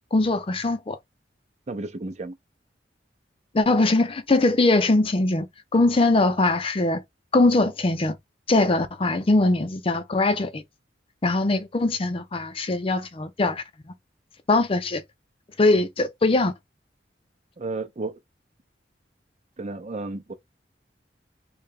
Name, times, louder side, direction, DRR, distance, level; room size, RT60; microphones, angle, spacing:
voice 1, 0.1-1.0 3.5-5.5 5.7-7.0 7.3-8.2 8.5-10.6 11.2-13.6 14.5-15.0 15.6-16.5, left 2 dB, 30° left, 0.5 m, -21 dB
voice 2, 1.7-2.4 17.6-18.2 19.6-20.3, right 2 dB, 40° right, 0.6 m, -32 dB
3.2 x 2.9 x 3.4 m
head